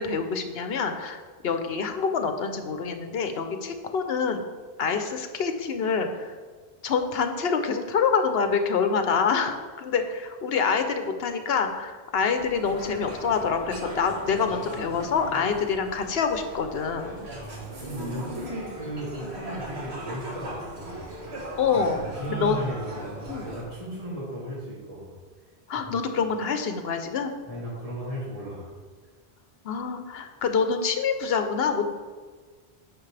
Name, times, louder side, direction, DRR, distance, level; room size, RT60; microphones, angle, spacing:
voice 1, 0.0-4.4 4.8-6.4 6.8-17.3 21.6-22.6 23.3-23.5 25.7-27.3 29.6-31.8, left 5 dB, 70° left, 7 dB, 1.0 m, -26 dB
sound 1, 12.4-23.6, right 1 dB, 85° right, 1.7 m, -38 dB
voice 2, 17.3-21.1 21.7-25.1 25.7-26.0 27.5-28.7, right 1 dB, 35° right, -8 dB, 2.6 m, -36 dB
9.5 x 6.3 x 3.3 m, 1.5 s
omnidirectional pair, 1.1 m